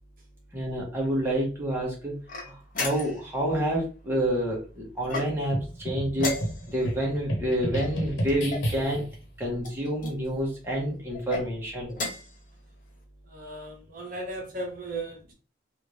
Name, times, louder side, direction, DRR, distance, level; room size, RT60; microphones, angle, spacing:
voice 1, 0.5-2.5 2.8-6.4 6.7-9.0 9.4-11.9, right 1 dB, 10° right, -4 dB, 1.0 m, -28 dB
sound 1, 2.3-3.3 5.0-5.6 6.2-6.9 7.8-8.7 9.6-10.2 11.1-11.5 11.9-12.4, left 2 dB, 45° left, 0.8 m, -34 dB
sound 2, 5.5-9.2, equal, 85° left, 1.1 m, -32 dB
voice 2, 13.3-15.3, right 2 dB, 45° right, 0 dB, 0.9 m, -36 dB
3.2 x 2.6 x 3.1 m, 0.34 s
head